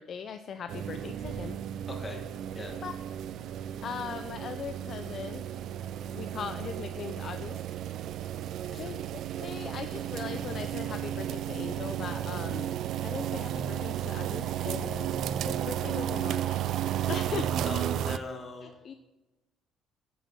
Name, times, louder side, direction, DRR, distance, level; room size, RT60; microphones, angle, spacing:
voice 1, 0.0-1.6 2.8-2.9 3.8-5.5 6.1-7.6 8.8-12.7 13.0-15.1 15.4-16.6 17.1-17.4 18.6-18.9, left 7 dB, 45° left, 8 dB, 0.5 m, -39 dB
sound 1, 0.7-18.2, right 10 dB, 65° right, 0.4 m, -33 dB
sound 2, 1.2-15.5, right 3 dB, 80° right, 3.0 m, -57 dB
voice 2, 1.9-2.2 2.5-2.8 8.7-8.9 17.6-18.7, left 2 dB, 20° left, 3 dB, 1.6 m, -40 dB
10.0 x 7.0 x 6.0 m, 1.1 s
cardioid pair, 145°, 0 cm